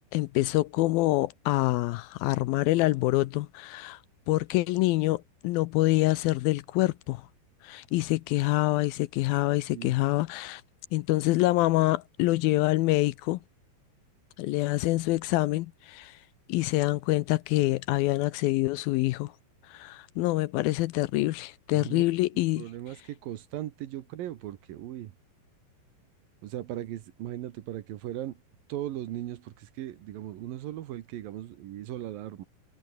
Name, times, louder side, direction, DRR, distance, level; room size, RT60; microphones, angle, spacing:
voice 1, 0.1-4.0 4.3-7.2 7.6-10.6 10.9-13.4 14.4-16.2 16.5-19.3 19.7-22.6, left 18 dB, 85° left, 2.1 m, -26 dB
voice 2, 21.7-22.0 22.6-25.1 26.4-28.4 28.7-32.4, right 13 dB, 70° right, 2.5 m, -38 dB
omnidirectional pair, 5.0 m